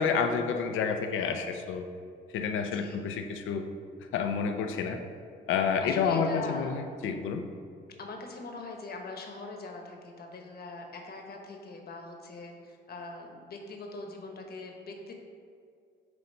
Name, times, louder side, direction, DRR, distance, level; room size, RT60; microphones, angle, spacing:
voice 1, 0.0-1.9 2.3-3.7 4.1-5.0 5.5-7.5, left 6 dB, 85° left, 6 dB, 0.6 m, -29 dB
voice 2, 2.7-3.0 5.8-6.7 8.0-15.1, left 3 dB, 50° left, 2 dB, 1.1 m, -42 dB
7.9 x 2.7 x 5.4 m, 2.2 s
cardioid pair, 90°, 20 cm